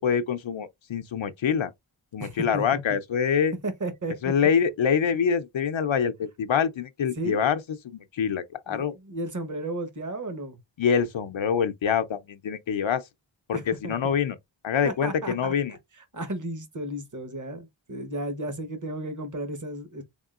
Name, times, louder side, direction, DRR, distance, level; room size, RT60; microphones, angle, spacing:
voice 1, 0.0-1.7 2.1-3.5 4.2-7.6 7.8-8.9 10.8-13.0 13.5-14.3 14.6-15.7, left 7 dB, 75° left, 0.6 m, -25 dB
voice 2, 2.2-2.8 3.6-4.3 7.1-7.5 8.7-10.6 13.5-14.1 14.8-20.0, right 1 dB, 40° right, 1.0 m, -34 dB
3.6 x 3.6 x 2.4 m
wide cardioid pair, 50°, 47 cm